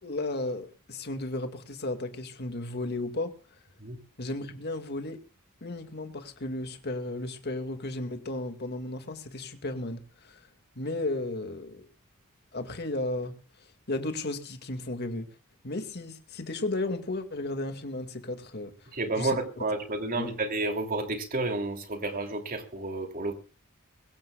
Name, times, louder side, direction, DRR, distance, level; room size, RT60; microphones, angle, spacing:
voice 1, 0.0-3.3 4.2-5.2 5.6-10.5 10.8-11.9 12.5-13.4 13.9-15.3 15.6-18.9 19.2-19.4 20.2-20.3, left 2 dB, 50° left, 2.1 m, -34 dB
voice 2, 18.9-23.3, right 2 dB, 40° right, 2.9 m, -31 dB
23.0 x 16.5 x 2.4 m
head